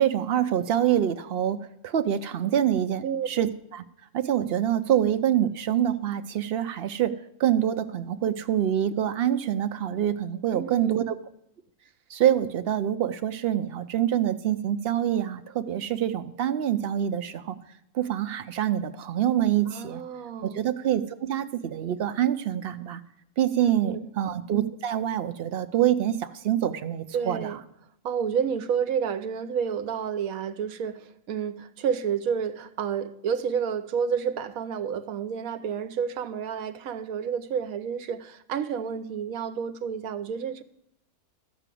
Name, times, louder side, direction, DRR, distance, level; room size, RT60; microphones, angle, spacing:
voice 1, 0.0-1.6 1.8-3.8 4.1-11.2 12.1-17.6 17.9-20.0 20.4-23.0 23.4-27.6, right 10 dB, 60° right, 0.6 m, -26 dB
voice 2, 3.0-3.5 10.5-11.1 19.7-20.6 23.6-24.1 27.1-27.6 28.0-40.6, right 7 dB, 80° right, 1.1 m, -30 dB
13.5 x 4.9 x 8.3 m
omnidirectional pair, 1.5 m